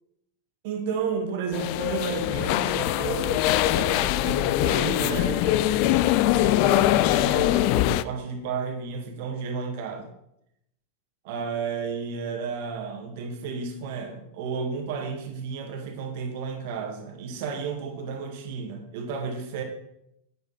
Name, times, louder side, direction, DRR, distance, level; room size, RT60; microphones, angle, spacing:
voice 1, 0.6-10.1 11.2-19.6, right 5 dB, 50° right, 4 dB, 2.0 m, -32 dB
sound 1, 1.5-8.0, left 15 dB, 45° left, 0.4 m, -22 dB
10.0 x 9.3 x 4.4 m, 0.77 s
figure-of-eight pair, 90°, 0 cm